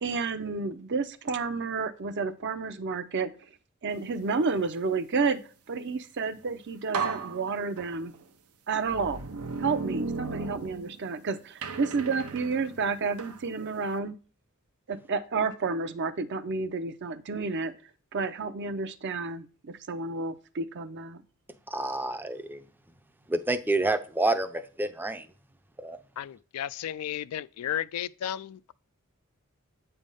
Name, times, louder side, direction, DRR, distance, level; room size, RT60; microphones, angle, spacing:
voice 1, 0.0-3.3 3.8-5.4 5.7-8.1 8.7-9.2 9.6-14.2 14.9-17.7 18.1-21.2, right 4 dB, 55° right, 0.6 m, -30 dB
sound 1, 6.4-6.5 6.9-8.2 8.9-11.2 11.6-13.4, right 4 dB, 85° right, 0.8 m, -35 dB
voice 2, 21.7-22.6 23.3-25.3 25.8-26.0, right 2 dB, 10° right, 0.5 m, -28 dB
voice 3, 26.2-28.7, left 10 dB, 85° left, 0.3 m, -34 dB
8.2 x 3.4 x 5.4 m
head